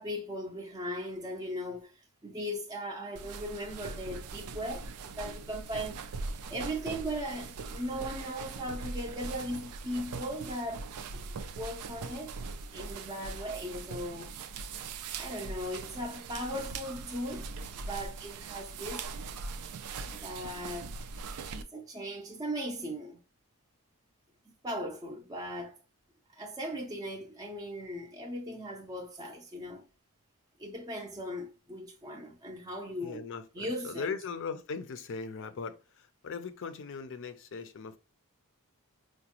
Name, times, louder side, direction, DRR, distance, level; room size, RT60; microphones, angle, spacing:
voice 1, 0.0-6.0 6.5-10.9 11.1-12.3 12.7-14.3 15.1-17.5 17.8-19.2 20.1-21.0 21.5-23.2 24.6-25.7 26.3-29.8 30.6-33.2 33.5-34.1, equal, 15° right, 0.5 m, -38 dB
sound 1, 3.2-21.6, right 4 dB, 80° right, 0.4 m, -41 dB
voice 2, 33.0-38.0, left 5 dB, 60° left, 0.5 m, -39 dB
4.8 x 2.1 x 2.8 m
head